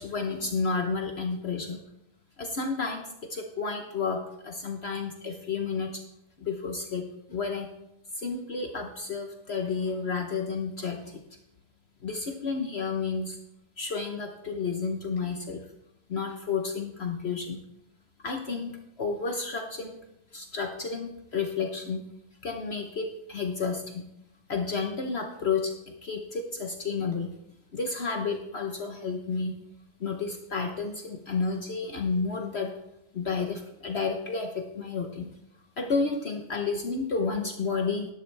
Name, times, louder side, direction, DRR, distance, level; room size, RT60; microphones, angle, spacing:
voice 1, 0.0-1.8 2.4-6.0 6.4-7.0 7.3-7.7 8.2-11.2 12.0-13.4 13.8-15.6 16.1-17.6 18.2-20.0 20.3-22.0 22.4-24.0 24.5-27.3 27.7-29.5 30.0-32.7 33.1-35.3 35.8-38.1, left 4 dB, 65° left, 4 dB, 0.6 m, -31 dB
11.5 x 11.0 x 3.3 m, 0.84 s
omnidirectional pair, 2.3 m